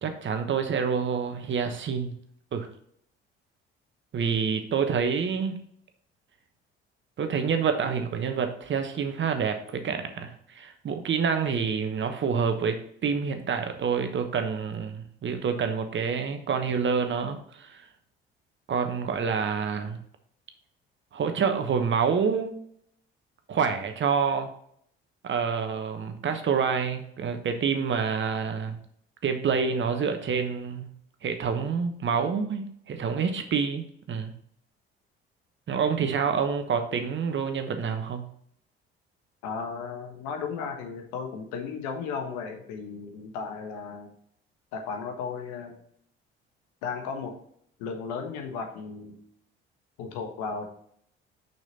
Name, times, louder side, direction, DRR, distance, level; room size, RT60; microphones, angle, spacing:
voice 1, 0.0-2.2 2.5-2.7 4.1-5.6 7.2-17.8 18.7-20.0 21.1-22.5 23.5-24.5 25.2-28.8 29.2-30.9 31.2-34.3 35.7-38.2, right 6 dB, 40° right, 7 dB, 1.1 m, -27 dB
voice 2, 39.4-44.1 44.7-45.8 46.8-47.3 47.8-49.2 50.0-50.6, left 5 dB, 65° left, 4 dB, 1.4 m, -35 dB
6.1 x 5.9 x 2.8 m, 0.66 s
figure-of-eight pair, 55°, 30 cm